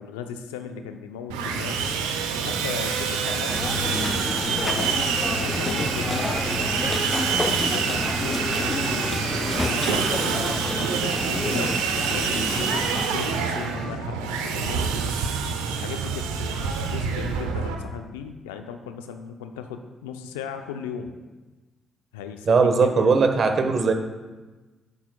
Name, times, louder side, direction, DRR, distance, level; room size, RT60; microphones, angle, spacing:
voice 1, 0.0-1.9 2.4-6.6 7.1-10.6 10.9-15.1 15.7-21.1 22.1-23.3, left 7 dB, 90° left, 7 dB, 0.5 m, -37 dB
Sawing, 1.3-17.7, right 5 dB, 85° right, 0.7 m, -26 dB
sound 1, 3.5-13.1, left 2 dB, 25° left, 0.4 m, -30 dB
voice 2, 22.5-23.9, right 4 dB, 55° right, 6 dB, 1.1 m, -19 dB
11.0 x 10.0 x 2.3 m, 1.2 s
hypercardioid pair, 50°, 0 cm